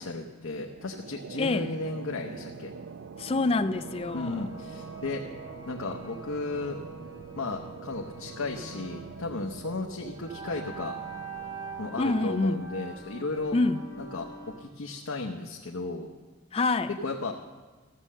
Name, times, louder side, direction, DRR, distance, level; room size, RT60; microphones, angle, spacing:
voice 1, 0.0-2.7 4.1-5.2 5.7-6.8 7.4-11.0 11.8-13.6 14.0-16.1 16.9-17.3, left 3 dB, 85° left, 0.8 m, -34 dB
sound 1, 0.6-13.7, right 4 dB, 60° right, 0.4 m, -45 dB
voice 2, 1.4-1.7 3.2-4.5 12.0-12.6 13.5-13.8 16.5-16.9, left 3 dB, 25° left, 0.4 m, -26 dB
sound 2, 3.7-14.5, right 4 dB, 15° right, 4.2 m, -44 dB
14.0 x 6.6 x 7.3 m
head